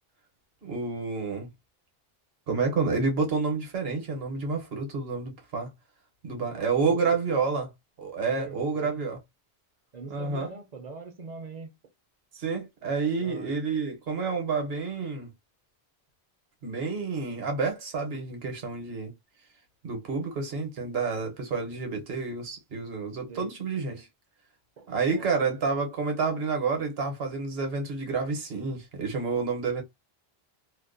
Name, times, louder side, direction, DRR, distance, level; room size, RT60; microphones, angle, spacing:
voice 1, 0.6-1.5 2.5-5.7 6.2-7.7 8.0-9.2 10.1-10.5 12.3-15.3 16.6-19.1 19.8-24.1 24.9-29.8, right 4 dB, 70° right, 1.0 m, -29 dB
voice 2, 6.4-7.1 8.3-9.0 9.9-11.8 13.2-13.5 23.3-23.5 24.8-25.5, right 4 dB, 55° right, 0.5 m, -43 dB
2.5 x 2.1 x 2.4 m
omnidirectional pair, 1.0 m